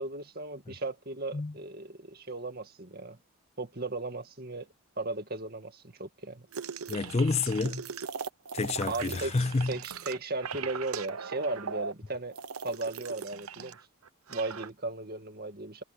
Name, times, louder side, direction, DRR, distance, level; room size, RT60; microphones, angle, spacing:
voice 1, 0.0-3.2 3.6-4.7 5.0-6.5 8.8-9.3 9.7-12.4 12.6-13.8 14.3-15.8, right 2 dB, 45° right, 2.2 m, -36 dB
sound 1, 6.5-13.8 14.1-14.7, right 6 dB, 80° right, 0.9 m, -39 dB
voice 2, 6.9-7.8 8.5-9.7, left 3 dB, 30° left, 0.4 m, -29 dB
head